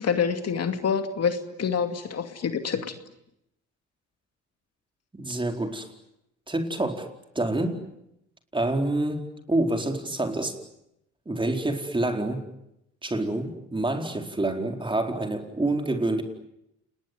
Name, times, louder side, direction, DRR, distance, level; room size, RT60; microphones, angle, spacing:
voice 1, 0.0-2.9, left 6 dB, 55° left, 7 dB, 2.5 m, -27 dB
voice 2, 5.1-5.9 6.5-7.1 7.3-7.8 8.5-9.2 9.5-10.6 11.3-12.4 13.0-16.2, right 2 dB, 15° right, 4 dB, 4.5 m, -27 dB
29.5 x 20.5 x 9.5 m, 0.82 s
cardioid pair, 90°, 30 cm